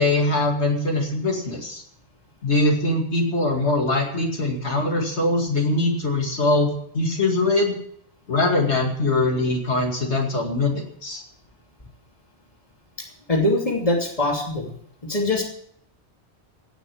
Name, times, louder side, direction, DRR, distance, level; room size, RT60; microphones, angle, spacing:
voice 1, 0.0-1.8 2.4-7.8 8.3-11.2, left 2 dB, 75° left, 1 dB, 2.6 m, -22 dB
voice 2, 13.0-14.7 15.0-15.4, left 2 dB, 30° left, 0 dB, 2.9 m, -23 dB
17.0 x 6.5 x 8.5 m, 0.66 s
omnidirectional pair, 1.2 m